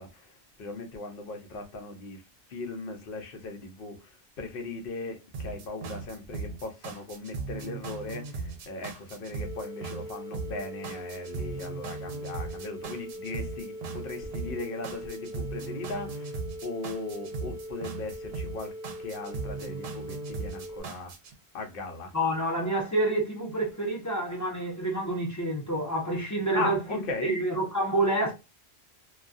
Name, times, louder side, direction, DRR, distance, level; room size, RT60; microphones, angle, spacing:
voice 1, 0.0-2.2 2.5-21.1 21.5-22.1 26.5-27.4, left 3 dB, 65° left, 0.8 m, -38 dB
sound 1, 5.3-21.3, right 4 dB, 70° right, 0.8 m, -38 dB
sound 2, 9.4-20.8, equal, 35° right, 1.3 m, -41 dB
voice 2, 22.1-26.8 27.2-28.3, right 1 dB, 20° left, 0.6 m, -28 dB
2.3 x 2.3 x 2.5 m
omnidirectional pair, 1.1 m